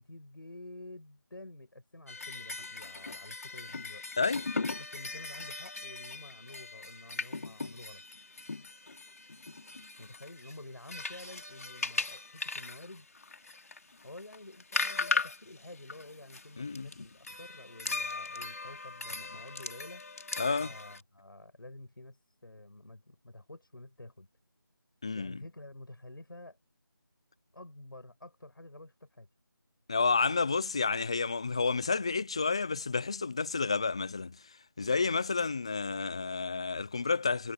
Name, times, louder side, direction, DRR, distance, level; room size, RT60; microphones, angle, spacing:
voice 1, 0.0-4.0 4.7-8.0 10.0-13.1 14.0-20.0 20.6-24.3 25.1-26.6 27.5-29.3, left 2 dB, 70° left, 7.8 m, -49 dB
sound 1, 2.1-21.0, left 3 dB, 45° left, 3.5 m, -38 dB
voice 2, 16.6-16.9 20.4-20.7 25.0-25.4 29.9-34.4 34.8-37.5, left 4 dB, 15° left, 0.6 m, -30 dB
figure-of-eight pair, 170°, 12 cm